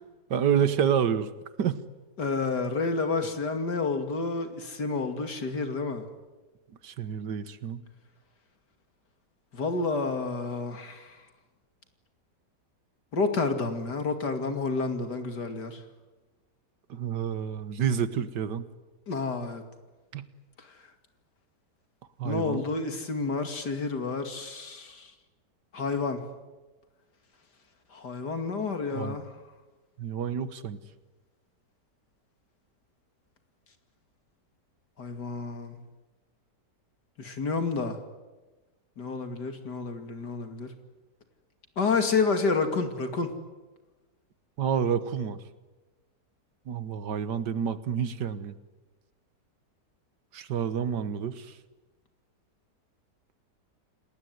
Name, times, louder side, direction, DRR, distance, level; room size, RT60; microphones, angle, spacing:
voice 1, 0.3-1.3 1.6-1.8 6.8-7.8 16.9-18.7 20.1-20.3 22.2-22.6 28.9-29.2 30.0-30.8 44.6-45.4 46.7-48.6 50.3-51.5, right 8 dB, 80° right, 13 dB, 1.9 m, -28 dB
voice 2, 2.2-6.0 9.5-11.2 13.1-15.8 19.1-19.6 20.6-20.7 22.2-25.1 25.7-26.3 27.9-29.3 35.0-35.8 37.2-38.0 39.0-40.7 41.8-43.3, left 4 dB, 70° left, 7 dB, 3.1 m, -30 dB
28.0 x 20.0 x 9.5 m, 1.2 s
omnidirectional pair, 1.8 m